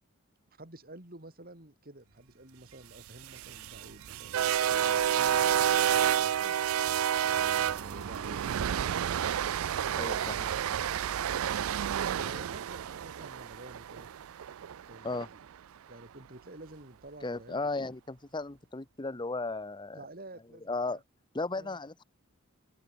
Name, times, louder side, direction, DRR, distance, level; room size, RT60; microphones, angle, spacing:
voice 1, 0.6-4.4 4.6-6.8 7.2-9.3 10.1-10.8 12.1-14.1 14.8-15.4 15.8-17.7 19.9-21.0 21.5-21.8, right 2 dB, 45° right, 4.2 m, -50 dB
sound 1, 3.1-15.3, right 9 dB, 85° right, 0.4 m, -30 dB
voice 2, 9.9-10.5 15.0-15.3 17.2-20.0 20.7-21.0 21.3-22.0, left 3 dB, 20° left, 0.8 m, -35 dB
open air
head